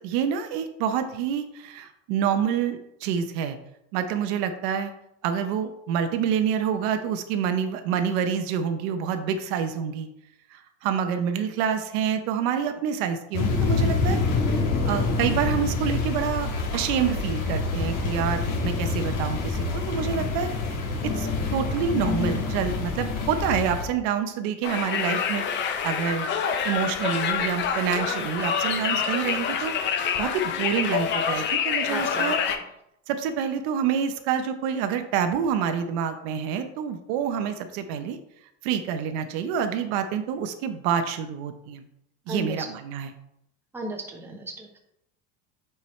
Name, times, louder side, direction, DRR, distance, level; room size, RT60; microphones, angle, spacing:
voice 1, 0.0-3.6 3.9-4.9 5.2-10.1 10.5-14.2 14.8-20.5 21.0-26.3 26.6-29.7 30.2-32.4 33.1-38.2 38.6-41.8 42.3-43.1, right 7 dB, 65° right, 8 dB, 0.7 m, -27 dB
sound 1, 13.3-23.8, left 3 dB, 60° left, 1.8 m, -26 dB
Conversation, 24.6-32.6, left 7 dB, 30° left, 0.6 m, -27 dB
voice 2, 31.9-32.4 42.3-42.7 43.7-44.8, right 1 dB, 5° right, 1 dB, 0.9 m, -35 dB
8.4 x 4.6 x 3.1 m, 0.79 s
cardioid pair, 155°, 35 cm